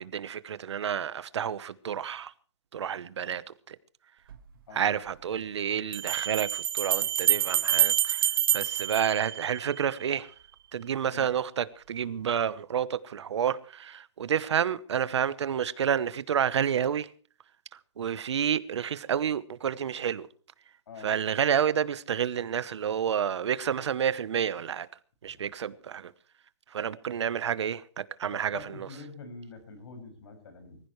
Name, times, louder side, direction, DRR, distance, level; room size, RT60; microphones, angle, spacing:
voice 1, 0.0-2.3 2.7-3.8 4.7-10.3 10.7-17.1 17.7-20.3 21.0-24.9 25.2-26.1 26.7-28.9, right 8 dB, 65° right, 1.0 m, -30 dB
sound 1, 4.3-4.4 5.9-9.9, right 10 dB, 45° right, 1.6 m, -27 dB
voice 2, 20.9-21.2 28.2-30.8, left 4 dB, 60° left, 6.4 m, -45 dB
24.0 x 15.5 x 3.2 m
hypercardioid pair, 180°, 16 cm